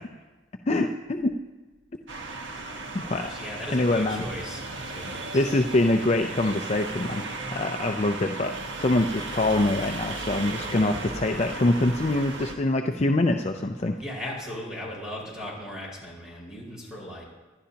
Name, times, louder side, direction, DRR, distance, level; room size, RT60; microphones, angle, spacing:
voice 1, 0.7-1.4 2.9-3.3 3.7-4.3 5.3-7.2 7.5-14.0, left 2 dB, 35° left, 4 dB, 0.5 m, -24 dB
sound 1, 2.1-12.6, right 3 dB, 75° right, 1.4 m, -36 dB
voice 2, 3.0-5.4 14.0-17.2, left 1 dB, 5° right, -5 dB, 5.0 m, -37 dB
25.5 x 11.5 x 2.9 m, 1.2 s
head